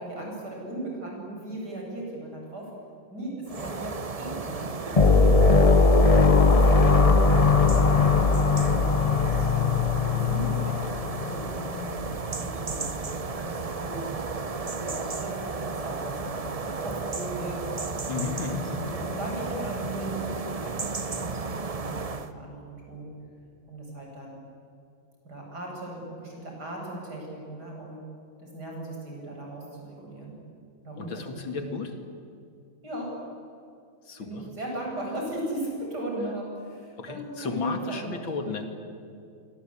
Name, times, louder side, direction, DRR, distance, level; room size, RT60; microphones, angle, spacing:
voice 1, 0.0-2.7 3.1-7.2 7.7-8.9 9.3-14.0 14.6-17.6 18.8-23.1 23.7-24.4 25.2-28.0 28.4-30.4 30.8-31.8 32.8-33.1 34.2-38.2, right 1 dB, 55° right, -1 dB, 8.2 m, -38 dB
sound 1, 3.5-22.3, right 4 dB, 40° right, 0.5 m, -34 dB
sound 2, 5.0-11.4, left 3 dB, 45° left, 0.4 m, -20 dB
sound 3, 6.7-17.9, left 13 dB, 15° left, 5.2 m, -34 dB
voice 2, 18.1-18.9 31.0-31.9 34.0-34.5 37.0-38.7, left 4 dB, 85° left, 6 dB, 3.0 m, -33 dB
26.5 x 24.5 x 8.7 m, 2.5 s
omnidirectional pair, 2.1 m